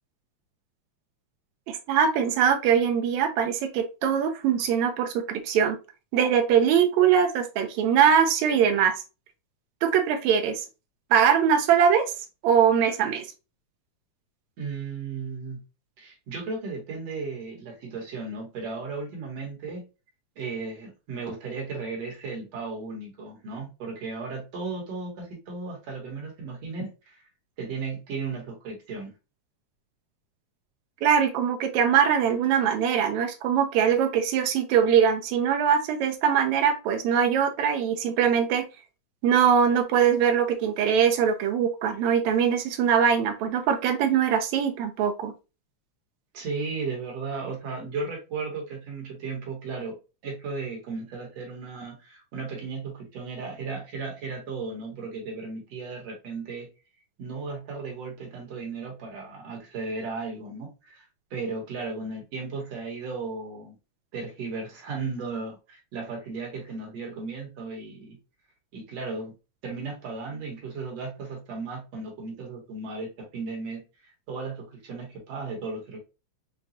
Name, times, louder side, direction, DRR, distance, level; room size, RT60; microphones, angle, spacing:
voice 1, 1.7-5.8 6.1-8.9 9.8-10.6 11.1-12.1 12.4-13.3 31.0-38.7 39.2-45.3, right 8 dB, 80° right, 6 dB, 1.9 m, -22 dB
voice 2, 14.6-15.6 16.0-19.8 20.4-27.2 27.6-29.1 46.3-50.0 50.2-56.7 57.2-61.0 61.3-63.8 64.1-68.2 68.7-69.3 69.6-73.8 74.3-76.0, right 4 dB, 60° right, 0 dB, 2.2 m, -35 dB
5.8 x 2.3 x 2.6 m, 0.29 s
omnidirectional pair, 3.4 m